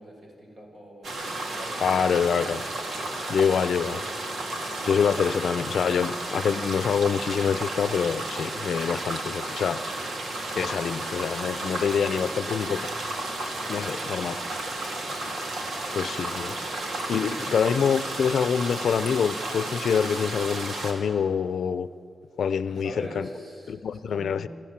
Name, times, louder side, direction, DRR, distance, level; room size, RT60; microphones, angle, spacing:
voice 1, 0.0-2.2 13.5-13.7 17.1-17.5 22.7-23.8 24.1-24.5, right 1 dB, 45° right, 0 dB, 5.6 m, -43 dB
sound 1, 1.0-20.9, right 2 dB, 85° right, 2.9 m, -33 dB
voice 2, 1.8-2.6 3.3-4.0 4.9-9.8 10.5-12.9 13.7-14.4 15.9-16.6 17.1-21.9 22.4-23.3 23.7-24.5, left 7 dB, 80° left, 15 dB, 0.6 m, -26 dB
27.0 x 13.5 x 7.5 m, 2.5 s
wide cardioid pair, 125°, 0 cm